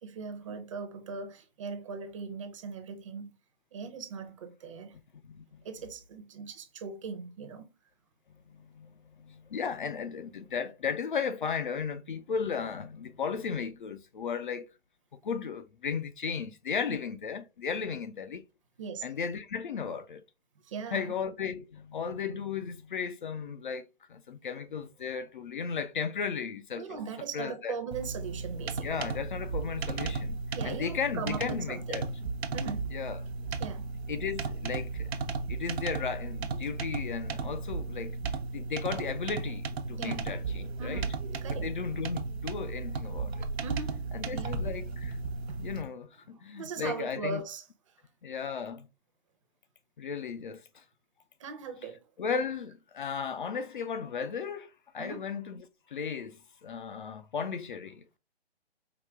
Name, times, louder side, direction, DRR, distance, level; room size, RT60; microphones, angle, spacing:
voice 1, 0.0-3.3 3.7-5.0 5.6-7.7 18.8-19.0 20.6-21.1 26.8-29.1 30.5-32.1 32.5-32.9 33.6-33.9 40.0-40.2 40.8-41.1 41.4-41.7 43.6-44.5 45.5-45.6 46.3-48.0 51.4-52.1 55.0-55.3, right 5 dB, 30° right, 0.7 m, -39 dB
voice 2, 5.2-5.6 8.5-14.7 15.2-18.4 19.0-20.2 20.9-23.8 24.1-27.0 27.3-27.8 28.8-32.1 32.9-33.2 34.1-35.1 35.5-38.2 38.5-41.0 41.6-43.5 44.1-45.2 45.6-47.4 48.2-48.9 50.0-50.8 52.2-55.6 55.9-58.2, left 6 dB, 50° left, 0.5 m, -35 dB
sound 1, 27.9-45.8, right 4 dB, 70° right, 0.8 m, -35 dB
4.8 x 2.2 x 3.4 m
hypercardioid pair, 150°, 33 cm